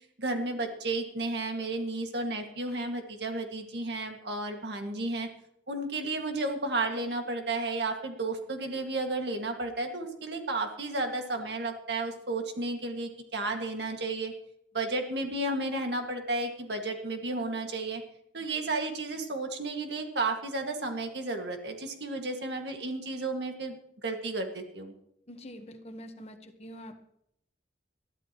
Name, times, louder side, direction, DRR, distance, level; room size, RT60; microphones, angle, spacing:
voice 1, 0.2-5.3 5.7-14.3 14.7-18.0 18.3-24.9, right 2 dB, 75° right, 4 dB, 1.9 m, -33 dB
voice 2, 25.3-27.0, equal, 35° left, 6 dB, 1.2 m, -45 dB
21.0 x 13.0 x 3.0 m, 0.75 s
head